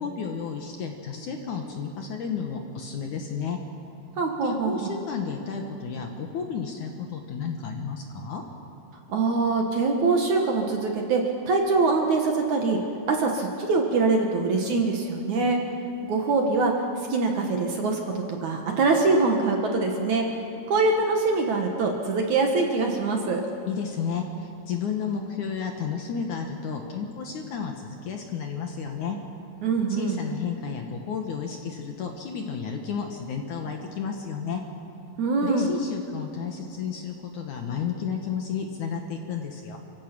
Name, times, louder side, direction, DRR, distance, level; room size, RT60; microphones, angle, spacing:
voice 1, 0.0-3.6 4.4-8.4 23.7-29.2 29.9-34.6 35.4-39.8, left 6 dB, 65° left, 3 dB, 2.3 m, -32 dB
voice 2, 4.2-4.9 9.1-12.8 13.1-15.6 16.0-18.1 18.4-20.2 20.7-23.4 29.6-30.2 35.2-35.7, right 3 dB, 55° right, 2 dB, 2.4 m, -24 dB
28.5 x 16.0 x 6.1 m, 2.8 s
omnidirectional pair, 4.6 m